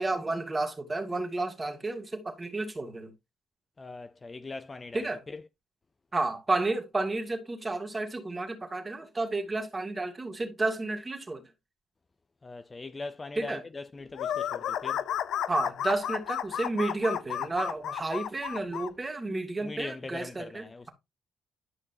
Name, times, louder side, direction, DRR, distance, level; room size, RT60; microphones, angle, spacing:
voice 1, 0.0-3.1 4.9-5.2 6.1-11.4 13.4-13.6 15.5-20.9, right 2 dB, 25° right, 2.0 m, -31 dB
voice 2, 3.8-5.4 12.4-15.0 19.6-20.9, left 3 dB, 25° left, 0.6 m, -41 dB
sound 1, 14.2-18.9, left 10 dB, 75° left, 0.5 m, -32 dB
11.0 x 5.3 x 2.7 m
cardioid pair, 90°, 0 cm